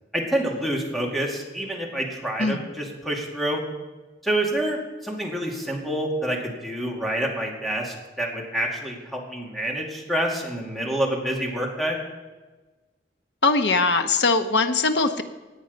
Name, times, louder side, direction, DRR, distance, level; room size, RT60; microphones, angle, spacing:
voice 1, 0.1-3.6 4.2-12.0, right 1 dB, ahead, -1 dB, 2.3 m, -27 dB
voice 2, 13.4-15.2, left 3 dB, 70° left, 7 dB, 1.0 m, -21 dB
17.5 x 9.1 x 5.3 m, 1.2 s
head